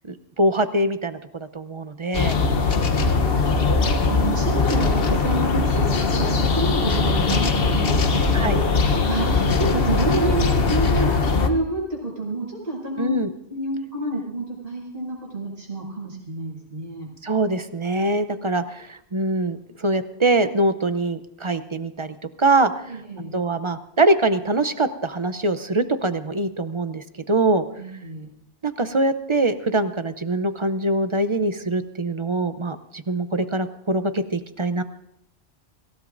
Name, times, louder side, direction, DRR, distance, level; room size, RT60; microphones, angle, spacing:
voice 1, 0.1-2.4 8.3-8.6 13.0-13.3 17.2-22.9 23.3-27.6 28.6-34.8, right 2 dB, 35° right, 11 dB, 0.6 m, -23 dB
sound 1, 2.1-11.5, left 4 dB, 60° left, 1.2 m, -20 dB
voice 2, 2.8-13.2 13.5-17.1 22.8-23.3 27.8-28.3, right 2 dB, 55° right, -4 dB, 6.2 m, -29 dB
25.5 x 16.0 x 2.6 m, 0.76 s
omnidirectional pair, 1.1 m